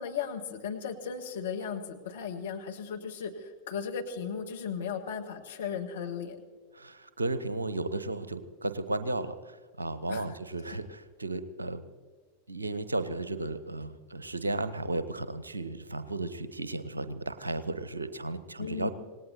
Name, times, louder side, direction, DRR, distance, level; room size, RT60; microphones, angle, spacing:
voice 1, 0.0-6.4 10.1-10.2 18.6-18.9, left 7 dB, 60° left, 3 dB, 1.6 m, -36 dB
voice 2, 6.7-11.8 12.5-18.9, right 2 dB, 80° right, 13 dB, 0.9 m, -34 dB
26.5 x 19.0 x 2.9 m, 1.5 s
figure-of-eight pair, 90°, 0 cm